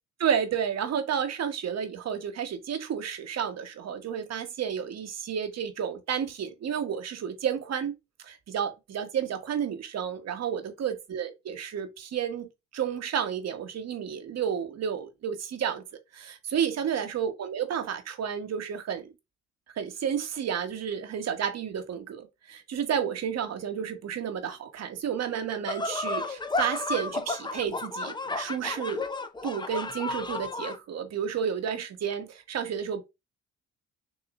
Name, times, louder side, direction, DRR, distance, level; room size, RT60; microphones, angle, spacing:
voice 1, 0.2-7.9 8.2-15.8 16.1-19.1 19.7-29.1 29.4-33.0, right 8 dB, 60° right, 1.2 m, -31 dB
sound 1, 25.7-30.8, left 3 dB, 15° left, 0.6 m, -32 dB
6.3 x 3.0 x 2.4 m
cardioid pair, 90°, 30 cm